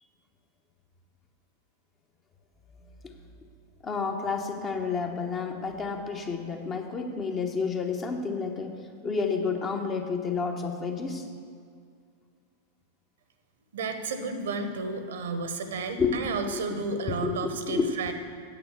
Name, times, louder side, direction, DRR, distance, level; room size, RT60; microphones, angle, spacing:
voice 1, 3.8-8.7 9.0-11.2 16.0-16.6 17.2-17.3 17.6-17.9, left 5 dB, 25° left, 4 dB, 1.0 m, -30 dB
voice 2, 13.7-18.1, right 3 dB, 60° right, 8 dB, 0.9 m, -32 dB
9.1 x 7.9 x 6.9 m, 2.3 s
figure-of-eight pair, 90°, 0 cm